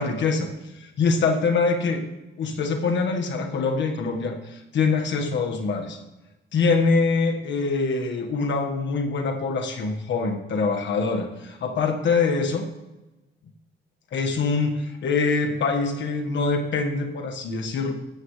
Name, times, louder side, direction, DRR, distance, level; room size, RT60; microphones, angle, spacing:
voice 1, 0.0-2.0 2.4-6.0 6.5-12.7 14.1-17.9, left 4 dB, 65° left, 3 dB, 1.5 m, -24 dB
13.5 x 8.6 x 3.2 m, 1.0 s
cardioid pair, 90°, 20 cm